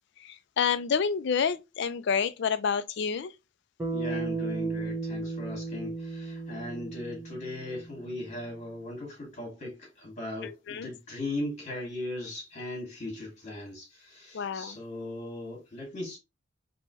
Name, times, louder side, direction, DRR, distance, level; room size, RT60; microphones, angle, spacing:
voice 1, 0.2-3.3 10.4-10.9 14.3-14.8, left 6 dB, 55° left, 0.4 m, -29 dB
Bass guitar, 3.8-8.2, right 3 dB, 15° right, 0.8 m, -35 dB
voice 2, 3.9-16.2, left 1 dB, 35° left, 1.5 m, -38 dB
3.6 x 2.9 x 2.9 m
head